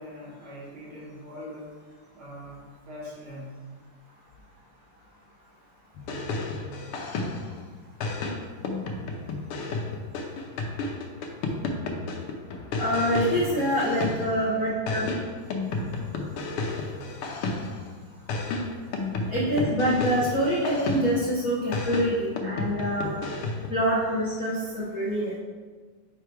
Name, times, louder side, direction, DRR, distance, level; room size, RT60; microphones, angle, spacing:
voice 1, 0.0-1.7 2.1-3.6 13.1-13.8 14.5-14.6 16.1-16.2 17.0-17.3, equal, 50° right, -5 dB, 1.8 m, -42 dB
sound 1, 6.0-7.6 8.0-14.5 14.9-17.9 18.3-21.3 21.7-23.8, left 3 dB, 85° left, 1.7 m, -32 dB
voice 2, 12.8-15.0 19.3-23.1 23.7-25.3, equal, 55° left, -7 dB, 1.0 m, -25 dB
4.9 x 4.7 x 4.6 m, 1.5 s
omnidirectional pair, 2.4 m